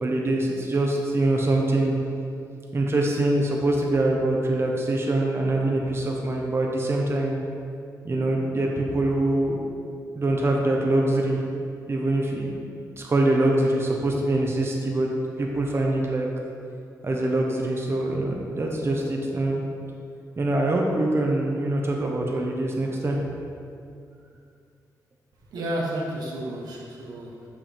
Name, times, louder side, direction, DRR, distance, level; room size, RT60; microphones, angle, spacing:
voice 1, 0.0-1.9 2.7-7.4 8.0-9.6 10.1-11.4 11.9-12.5 13.0-15.1 15.4-16.3 17.0-19.6 20.4-23.2, right 2 dB, 35° right, 0 dB, 1.1 m, -24 dB
voice 2, 25.5-27.5, right 1 dB, 85° right, -2 dB, 1.3 m, -31 dB
6.9 x 6.0 x 4.4 m, 2.4 s
cardioid pair, 80°, 7 cm